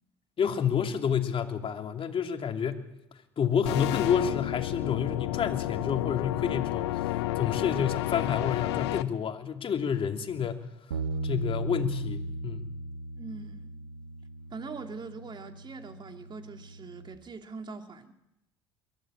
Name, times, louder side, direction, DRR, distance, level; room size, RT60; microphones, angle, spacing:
voice 1, 0.4-2.8 3.4-7.1 7.4-10.6 11.2-12.7, left 7 dB, 40° left, 2.8 m, -29 dB
sound 1, 3.6-9.0, left 16 dB, 80° left, 0.8 m, -31 dB
Bass guitar, 10.9-17.2, right 1 dB, 90° right, 1.5 m, -37 dB
voice 2, 13.2-13.8 14.5-18.1, right 4 dB, 35° right, 2.6 m, -42 dB
22.5 x 15.0 x 8.8 m
hypercardioid pair, 70°, 14 cm